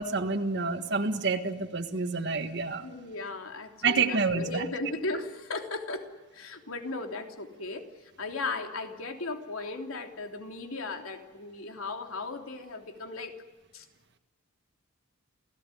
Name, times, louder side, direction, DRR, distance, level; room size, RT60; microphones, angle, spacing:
voice 1, 0.0-2.9 3.8-4.6, right 4 dB, 55° right, 7 dB, 1.6 m, -28 dB
voice 2, 2.8-6.1 6.3-13.4 13.7-13.9, left 3 dB, 80° left, 4 dB, 3.2 m, -36 dB
29.0 x 17.0 x 9.9 m, 1.2 s
head